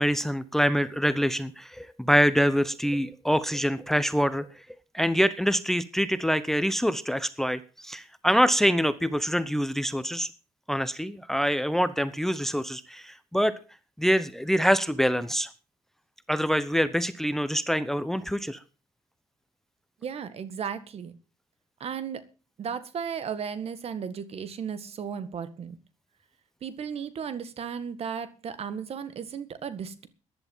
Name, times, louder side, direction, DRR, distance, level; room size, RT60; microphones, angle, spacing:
voice 1, 0.0-4.7 4.9-10.3 10.7-13.5 14.0-15.5 16.3-18.6, equal, 5° left, 15 dB, 0.9 m, -25 dB
voice 2, 20.0-21.1 21.8-22.2 22.6-25.8 26.6-30.1, right 7 dB, 55° right, 13 dB, 1.8 m, -35 dB
14.5 x 11.0 x 5.6 m, 0.35 s
cardioid pair, 100°, 13 cm